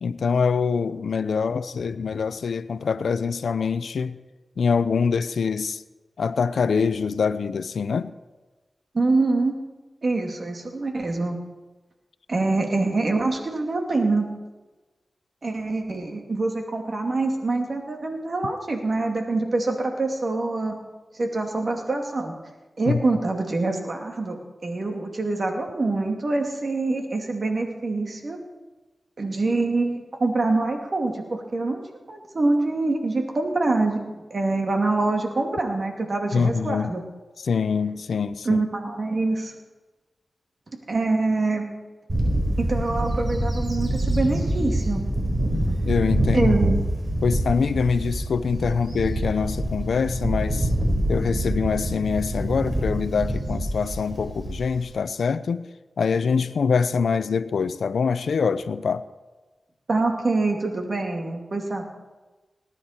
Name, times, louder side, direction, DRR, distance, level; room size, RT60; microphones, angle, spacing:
voice 1, 0.0-4.2 4.6-5.8 6.2-8.1 22.9-23.0 36.3-36.9 37.4-38.6 45.8-46.5 47.2-50.7 51.1-55.7 56.0-59.0, left 5 dB, 85° left, 0.5 m, -24 dB
voice 2, 8.9-9.5 10.0-11.4 12.3-14.3 15.4-20.8 21.1-22.3 22.8-28.4 29.2-31.8 32.1-34.0 34.3-37.0 38.5-39.5 40.9-41.7 42.6-45.0 46.3-46.8 59.9-61.8, right 3 dB, 55° right, 2.4 m, -25 dB
Bird / Wind, 42.1-54.9, right 1 dB, 40° right, 4.7 m, -25 dB
19.5 x 9.9 x 4.4 m
cardioid pair, 45°, 0 cm